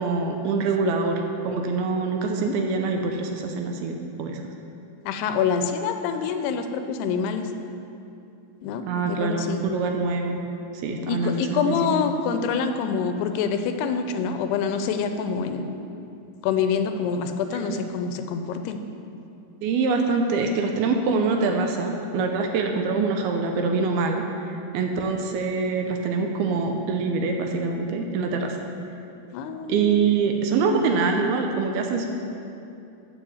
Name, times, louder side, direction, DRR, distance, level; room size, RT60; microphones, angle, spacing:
voice 1, 0.0-4.4 8.9-10.5 10.8-12.0 17.5-17.8 19.6-28.6 29.7-32.1, right 4 dB, 80° right, 3 dB, 2.4 m, -25 dB
voice 2, 5.1-7.4 8.6-9.6 11.1-15.8 16.4-18.8 29.3-30.1, left 6 dB, 85° left, 7 dB, 2.6 m, -26 dB
13.5 x 5.1 x 7.0 m, 2.7 s
omnidirectional pair, 4.7 m